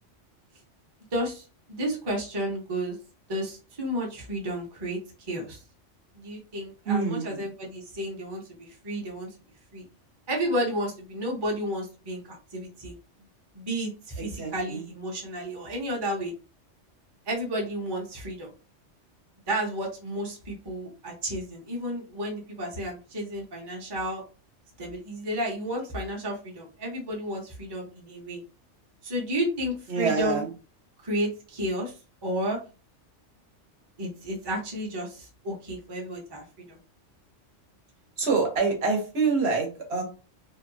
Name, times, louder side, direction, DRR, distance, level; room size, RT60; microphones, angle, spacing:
voice 1, 1.1-3.0 3.3-5.0 5.3-5.6 6.1-9.3 9.7-9.8 10.3-13.0 13.5-16.3 17.3-18.5 19.5-24.2 24.8-28.4 29.0-30.4 31.0-32.0 32.2-32.6 34.0-36.8, equal, 25° right, -1 dB, 0.6 m, -32 dB
voice 2, 6.9-7.5 14.2-14.8 29.9-30.5 38.2-40.0, right 4 dB, 60° right, 0 dB, 1.1 m, -26 dB
2.7 x 2.2 x 2.6 m, 0.33 s
omnidirectional pair, 1.3 m